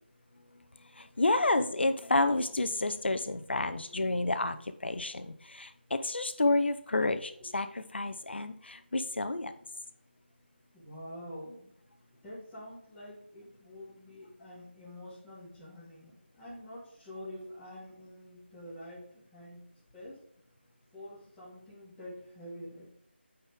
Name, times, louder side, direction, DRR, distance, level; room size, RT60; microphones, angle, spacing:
voice 1, 1.0-9.5, left 2 dB, 65° left, 11 dB, 0.8 m, -30 dB
voice 2, 10.7-11.7 12.2-19.6 19.9-20.2 20.9-22.9, left 1 dB, 10° left, -9 dB, 2.5 m, -47 dB
8.8 x 4.4 x 3.6 m, 0.69 s
figure-of-eight pair, 165°, 6 cm